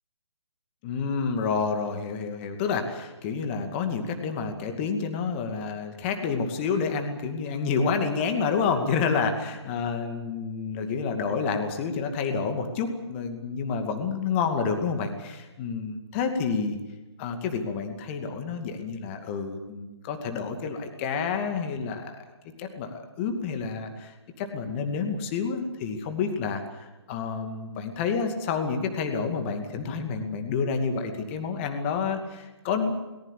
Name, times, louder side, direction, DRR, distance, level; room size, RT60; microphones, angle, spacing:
voice 1, 0.8-16.8 17.2-22.2 22.6-33.0, left 5 dB, 25° left, 6 dB, 2.4 m, -29 dB
21.5 x 19.5 x 8.4 m, 1.1 s
figure-of-eight pair, 140°, 14 cm